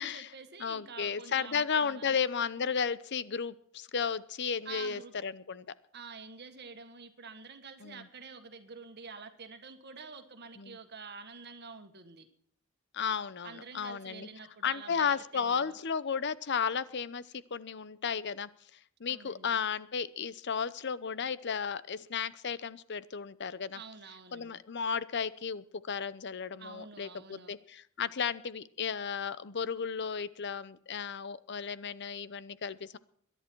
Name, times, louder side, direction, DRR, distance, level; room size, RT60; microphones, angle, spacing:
voice 1, 0.0-2.2 4.6-5.1 5.9-12.3 13.4-15.8 19.1-19.6 23.7-24.6 26.6-27.6, right 4 dB, 55° right, 7 dB, 1.6 m, -48 dB
voice 2, 0.6-5.6 7.8-8.0 10.6-10.8 12.9-14.3 14.6-17.2 17.5-18.5 19.0-23.8 24.3-33.0, left 6 dB, 55° left, 17 dB, 0.8 m, -34 dB
22.0 x 11.0 x 4.6 m, 0.63 s
head